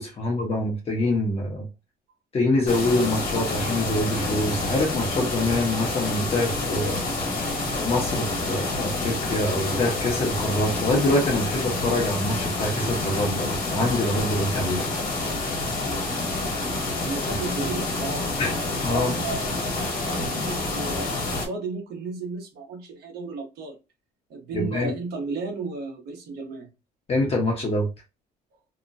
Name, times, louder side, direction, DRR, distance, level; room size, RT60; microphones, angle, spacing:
voice 1, 0.0-1.7 2.3-7.0 7.8-14.8 18.4-18.5 18.8-19.1 24.5-24.9 27.1-27.9, left 1 dB, 35° left, 0.9 m, -25 dB
sound 1, 2.7-21.5, left 2 dB, 55° left, 1.3 m, -28 dB
voice 2, 17.0-18.2 18.9-23.8 24.3-26.7, right 3 dB, 70° right, 1.0 m, -34 dB
2.9 x 2.2 x 2.6 m
cardioid pair, 110°, 17 cm